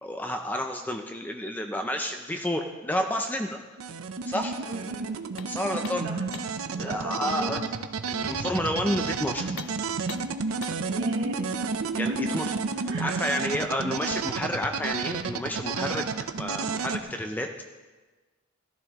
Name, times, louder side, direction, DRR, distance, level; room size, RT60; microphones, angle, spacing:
voice 1, 0.0-3.6 4.2-4.6 5.5-6.1 6.8-7.6 8.1-9.5 12.0-16.0 16.4-17.5, left 1 dB, 10° left, 4 dB, 0.4 m, -30 dB
sound 1, 3.8-17.0, right 4 dB, 90° right, 0.6 m, -31 dB
voice 2, 4.6-5.1 6.0-6.3 6.8-7.5 10.5-11.4 11.9-12.4 12.9-13.3, right 1 dB, 55° right, -3 dB, 2.2 m, -36 dB
sound 2, 5.4-6.7 9.5-10.9, left 8 dB, 65° left, 0.4 m, -44 dB
sound 3, 8.2-11.9, left 1 dB, 25° left, 1.7 m, -46 dB
14.0 x 12.5 x 3.0 m, 1.3 s
head